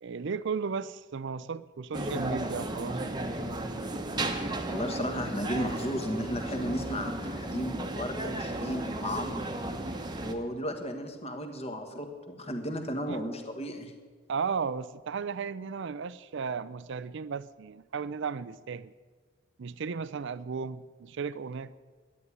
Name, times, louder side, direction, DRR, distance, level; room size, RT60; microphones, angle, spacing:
voice 1, 0.0-3.0 13.1-13.2 14.3-18.9 19.6-21.7, right 5 dB, 55° right, 16 dB, 0.4 m, -35 dB
sound 1, 1.9-10.3, right 1 dB, 20° right, 1.1 m, -34 dB
voice 2, 4.7-9.5 10.2-13.9, equal, 30° left, 5 dB, 1.5 m, -34 dB
11.0 x 11.0 x 9.8 m, 1.5 s
head